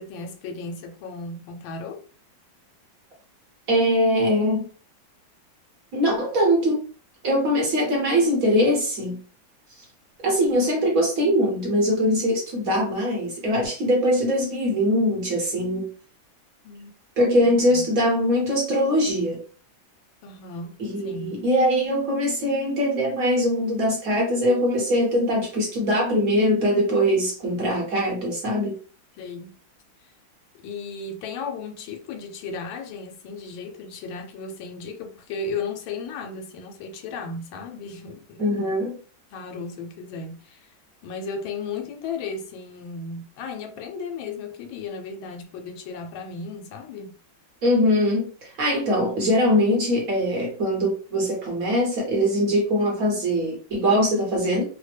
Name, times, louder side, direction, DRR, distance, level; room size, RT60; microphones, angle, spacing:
voice 1, 0.0-2.0 16.6-16.9 17.4-17.8 20.2-21.4 29.2-29.5 30.6-38.8 39.3-40.7 41.0-47.1, left 4 dB, 80° left, 1.4 m, -35 dB
voice 2, 3.7-4.6 5.9-6.8 7.2-9.2 10.2-15.9 17.2-19.4 20.8-28.7 38.4-38.9 47.6-54.6, equal, 55° right, 1.2 m, -22 dB
3.3 x 2.1 x 3.2 m
omnidirectional pair, 2.1 m